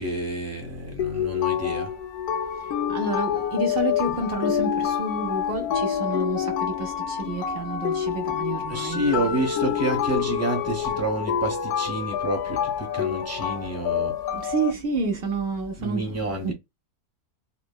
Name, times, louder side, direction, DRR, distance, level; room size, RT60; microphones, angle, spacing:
voice 1, 0.0-1.9 8.7-14.2 15.8-16.5, right 1 dB, 15° right, 0.7 m, -29 dB
sound 1, 1.0-14.7, left 9 dB, 70° left, 1.0 m, -27 dB
voice 2, 2.9-9.5 14.3-16.5, right 3 dB, 65° right, 0.5 m, -30 dB
3.6 x 2.0 x 2.2 m
omnidirectional pair, 1.8 m